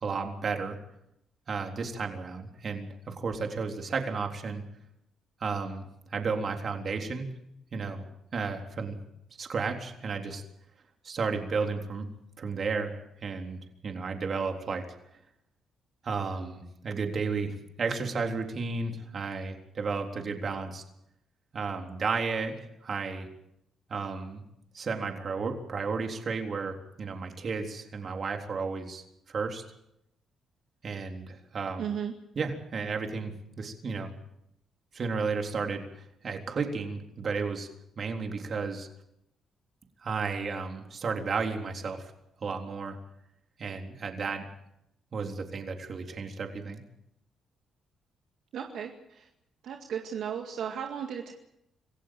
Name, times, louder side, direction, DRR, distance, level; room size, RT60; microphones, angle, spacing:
voice 1, 0.0-0.8 1.5-4.6 5.4-5.8 6.1-7.3 7.7-9.0 9.4-10.4 11.0-12.1 12.4-14.8 16.0-20.8 21.5-23.3 23.9-24.4 24.7-29.6 30.8-31.9 32.4-34.1 34.9-37.7 38.0-38.9 40.0-42.1 42.4-43.0 43.6-44.4 45.1-46.8, right 4 dB, 45° right, 3 dB, 3.7 m, -33 dB
voice 2, 31.8-32.1 48.5-49.3 49.6-51.3, right 8 dB, 70° right, 2 dB, 2.1 m, -35 dB
27.0 x 15.5 x 7.8 m, 0.81 s
cardioid pair, 90°, 0 cm